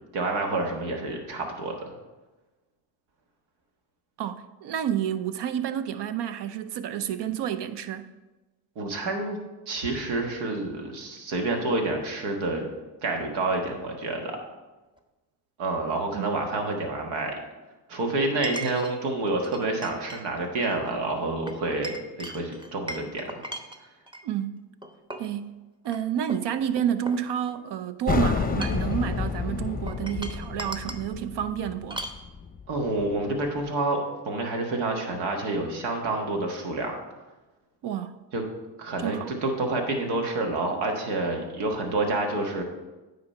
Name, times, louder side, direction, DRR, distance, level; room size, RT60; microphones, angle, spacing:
voice 1, 0.1-1.9 8.7-9.4 9.7-12.6 13.0-14.4 15.6-17.3 17.9-23.4 32.7-34.0 34.2-37.0 38.3-38.4 38.8-42.6, right 2 dB, 80° right, 1.5 m, -28 dB
voice 2, 4.2-8.0 16.1-16.3 24.2-24.6 25.2-25.6 25.8-32.0 37.8-38.2 39.0-39.3, right 9 dB, 60° right, 0.7 m, -29 dB
Chink clink, 15.0-15.1 18.4-18.9 19.4-20.2 20.5-20.8 21.5-24.2 24.8-25.3 25.8-26.0 26.3-27.7 28.4-29.0 29.9-31.1 31.9-32.2, right 1 dB, 10° right, 0.8 m, -38 dB
sound 1, 28.1-33.4, left 5 dB, 20° left, 0.7 m, -30 dB
9.5 x 4.0 x 5.3 m
supercardioid pair, 70°, 47 cm